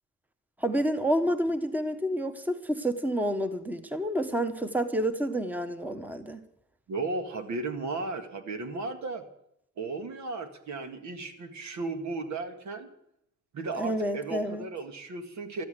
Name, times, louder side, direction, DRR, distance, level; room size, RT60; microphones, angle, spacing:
voice 1, 0.6-6.4 13.8-14.7, equal, 5° right, 8 dB, 1.2 m, -29 dB
voice 2, 6.9-9.2 9.8-12.9 13.5-15.6, right 3 dB, 70° right, 6 dB, 2.0 m, -35 dB
13.5 x 12.5 x 6.8 m, 0.73 s
cardioid pair, 90°, 30 cm